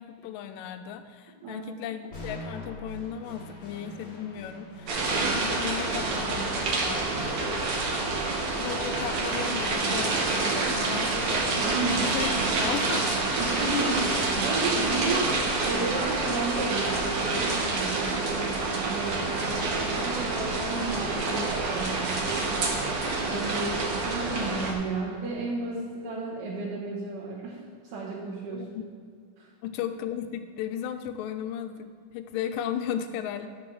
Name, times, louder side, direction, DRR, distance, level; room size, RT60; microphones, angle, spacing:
voice 1, 0.0-7.9 8.5-12.3 12.6-13.1 23.3-23.9 28.5-28.8 29.6-33.5, left 9 dB, 90° left, 9 dB, 2.3 m, -36 dB
sound 1, 2.1-10.1, left 1 dB, 40° left, 1.7 m, -46 dB
sound 2, 4.9-24.7, right 3 dB, 55° right, 1.7 m, -27 dB
voice 2, 11.6-12.0 13.4-22.8 23.2-27.6 27.8-28.7 29.4-29.5, right 2 dB, 70° right, -8 dB, 2.8 m, -33 dB
9.6 x 6.3 x 6.1 m, 2.1 s
omnidirectional pair, 3.9 m